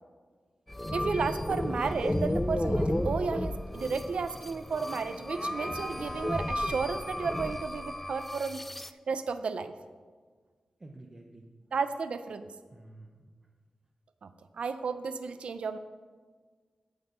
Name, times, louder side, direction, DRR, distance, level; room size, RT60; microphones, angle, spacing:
sound 1, 0.7-8.9, left 1 dB, 10° left, 0.3 m, -33 dB
voice 1, 0.9-9.7 11.7-12.5 14.2-15.8, right 5 dB, 65° right, 10 dB, 0.5 m, -33 dB
voice 2, 10.8-11.5 12.7-13.3, right 2 dB, 25° right, 0 dB, 0.7 m, -50 dB
9.7 x 5.4 x 7.9 m, 1.5 s
wide cardioid pair, 175°, 2 cm